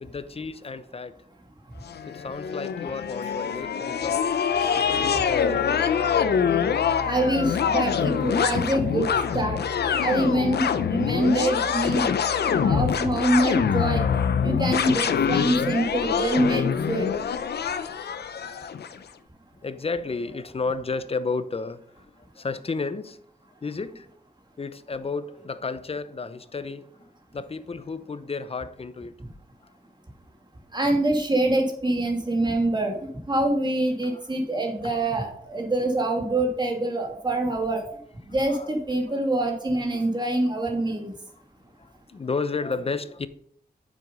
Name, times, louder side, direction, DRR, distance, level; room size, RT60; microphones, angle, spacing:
voice 1, 0.0-1.2 2.1-4.2 4.7-6.1 18.1-18.8 19.6-23.2 23.6-24.1 24.6-26.9 27.3-29.2 34.0-34.2 34.8-35.0 38.5-38.8 39.1-39.3 41.8-43.3, left 4 dB, 35° left, 0.7 m, -33 dB
sound 1, 1.9-19.0, left 7 dB, 85° left, 0.7 m, -25 dB
voice 2, 7.1-9.6 10.0-12.1 12.6-14.0 14.4-17.1 30.7-32.9 33.3-37.8 38.3-41.1, right 1 dB, 25° right, 2.4 m, -25 dB
9.3 x 7.6 x 5.4 m
wide cardioid pair, 105°, 16 cm